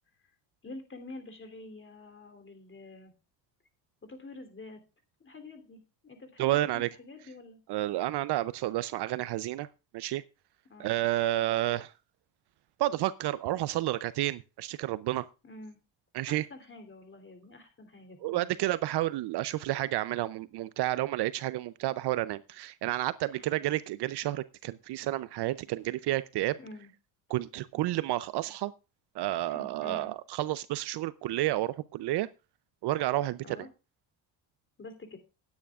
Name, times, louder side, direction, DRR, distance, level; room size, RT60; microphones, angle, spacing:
voice 1, 0.6-3.1 4.0-4.8 5.2-7.6 10.6-11.1 15.4-15.8 16.3-18.5 23.3-23.6 26.6-26.9 29.5-30.1 33.4-33.7 34.8-35.2, left 2 dB, 25° left, 7 dB, 3.2 m, -47 dB
voice 2, 6.4-6.9 7.7-9.7 9.9-10.2 10.8-11.9 12.8-15.3 16.1-16.5 18.2-26.6 27.3-28.7 29.1-32.3 32.8-33.6, right 15 dB, 60° right, 16 dB, 0.6 m, -30 dB
19.0 x 9.5 x 2.4 m, 0.30 s
cardioid pair, 105°, 45 cm